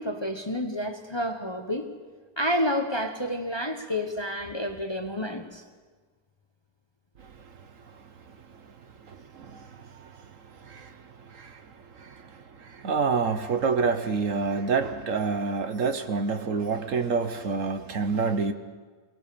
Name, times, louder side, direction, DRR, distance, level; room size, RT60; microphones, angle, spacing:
voice 1, 0.0-1.9 2.4-5.6, equal, 20° left, 6 dB, 1.0 m, -29 dB
voice 2, 9.1-10.1 10.6-11.0 11.3-11.6 12.0-12.3 12.6-18.5, right 4 dB, 60° right, 9 dB, 1.3 m, -28 dB
23.5 x 19.0 x 6.9 m, 1.5 s
omnidirectional pair, 1.7 m